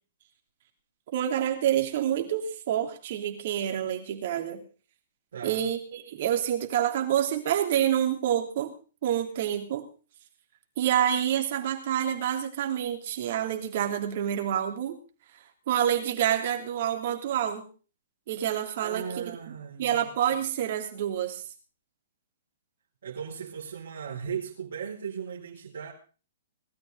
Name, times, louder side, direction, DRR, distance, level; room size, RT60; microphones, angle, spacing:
voice 1, 1.1-4.6 5.4-8.7 9.0-9.8 10.8-15.0 15.7-17.7 18.3-21.4, right 10 dB, 55° right, 4 dB, 3.2 m, -28 dB
voice 2, 5.3-5.6 18.8-20.1 23.0-25.9, right 7 dB, 70° right, -4 dB, 4.0 m, -37 dB
20.0 x 13.0 x 4.0 m, 0.37 s
hypercardioid pair, 125°, 0 cm